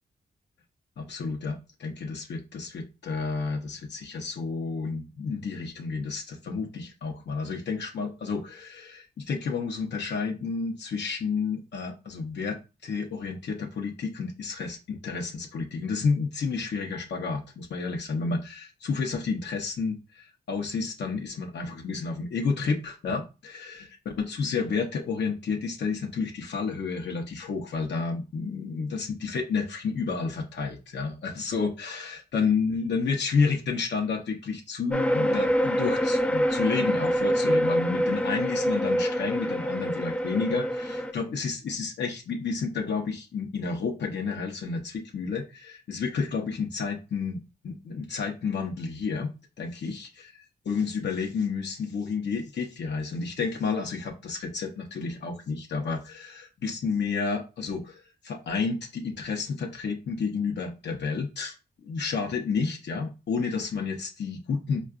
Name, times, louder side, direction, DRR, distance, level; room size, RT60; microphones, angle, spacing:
voice 1, 1.0-23.9 24.3-49.3 49.6-50.3 50.6-61.5 61.8-64.8, left 5 dB, 80° left, 2 dB, 0.7 m, -30 dB
sound 1, 34.9-41.1, equal, 5° left, 0.4 m, -25 dB
4.5 x 2.3 x 2.4 m, 0.29 s
cardioid pair, 70°, 18 cm